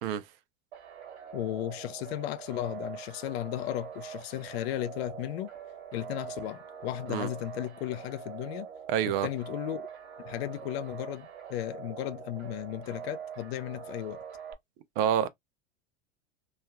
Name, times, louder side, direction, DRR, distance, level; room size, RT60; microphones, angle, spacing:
sound 1, 0.7-14.5, right 8 dB, 75° right, 1.3 m, -44 dB
voice 1, 1.3-5.5 5.9-8.7 9.0-9.9 10.2-14.2, left 14 dB, 70° left, 0.5 m, -35 dB
voice 2, 8.9-9.3 15.0-15.3, right 9 dB, 60° right, 0.6 m, -27 dB
3.1 x 2.4 x 2.2 m
hypercardioid pair, 105°, 33 cm